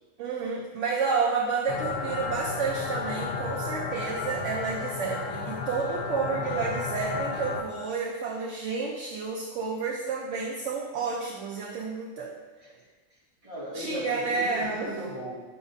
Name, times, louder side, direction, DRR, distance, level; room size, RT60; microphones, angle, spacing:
voice 1, 0.2-12.3 13.7-14.9, right 5 dB, 65° right, -1 dB, 1.0 m, -30 dB
sound 1, 1.7-7.6, left 4 dB, 55° left, 0.7 m, -33 dB
voice 2, 13.1-15.4, left 1 dB, 25° right, -7 dB, 2.2 m, -37 dB
9.6 x 6.0 x 2.7 m, 1.3 s
omnidirectional pair, 1.5 m